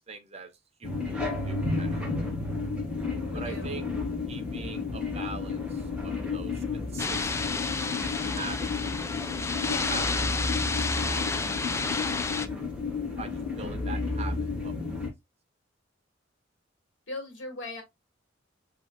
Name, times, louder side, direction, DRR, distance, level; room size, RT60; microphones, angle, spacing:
voice 1, 0.1-0.5 0.8-1.2 1.4-2.5 3.3-3.9 4.3-7.6 8.4-9.1 9.9-10.8 11.0-11.3 12.3-12.4 13.2-14.7, right 4 dB, 35° right, 0.7 m, -43 dB
sound 1, 0.8-15.1, left 3 dB, 5° right, 1.6 m, -32 dB
voice 2, 3.3-3.7 9.6-10.0 17.1-17.8, left 2 dB, 70° left, 1.8 m, -39 dB
sound 2, 7.0-12.5, left 4 dB, 15° left, 0.3 m, -31 dB
6.0 x 3.1 x 2.3 m
head